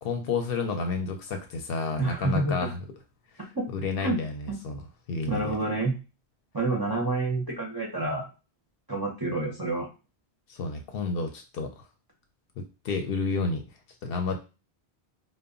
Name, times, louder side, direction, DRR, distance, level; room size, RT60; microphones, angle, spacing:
voice 1, 0.0-2.8 3.7-4.8 5.1-5.6 10.5-11.8 12.6-13.6 14.0-14.4, left 4 dB, 65° left, 4 dB, 0.7 m, -30 dB
voice 2, 2.0-2.7 3.4-3.7 4.0-4.2 4.5-4.6 5.3-5.9 6.5-8.3 8.9-9.9, right 2 dB, 30° right, -2 dB, 0.4 m, -28 dB
2.1 x 2.0 x 3.6 m, 0.30 s
omnidirectional pair, 1.1 m